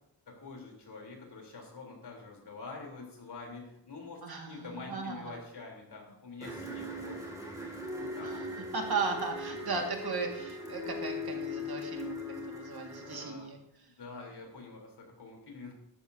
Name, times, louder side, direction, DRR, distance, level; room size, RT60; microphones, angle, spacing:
voice 1, 0.3-7.7 8.0-8.3 13.0-13.5 13.9-15.7, left 3 dB, 65° left, 0 dB, 3.7 m, -46 dB
voice 2, 4.2-5.4 8.2-8.5 8.7-13.6, right 4 dB, 60° right, 2 dB, 2.0 m, -36 dB
sound 1, 6.4-13.2, left 2 dB, 10° right, 2.3 m, -39 dB
13.0 x 13.0 x 2.8 m, 0.77 s
wide cardioid pair, 160°, 43 cm